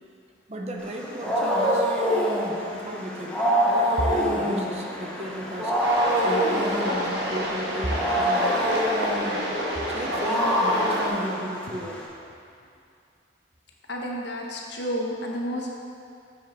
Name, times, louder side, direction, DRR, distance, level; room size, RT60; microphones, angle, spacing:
voice 1, 0.5-1.9 2.5-5.8 6.2-8.8 9.9-12.0, right 1 dB, 35° right, 0 dB, 0.8 m, -34 dB
Wild animals, 0.8-12.1, equal, 5° left, 0.9 m, -26 dB
sound 1, 5.8-11.1, equal, 60° right, 1.5 m, -29 dB
voice 2, 13.9-15.7, equal, 65° left, -1 dB, 1.2 m, -30 dB
9.5 x 7.1 x 4.0 m, 2.5 s
head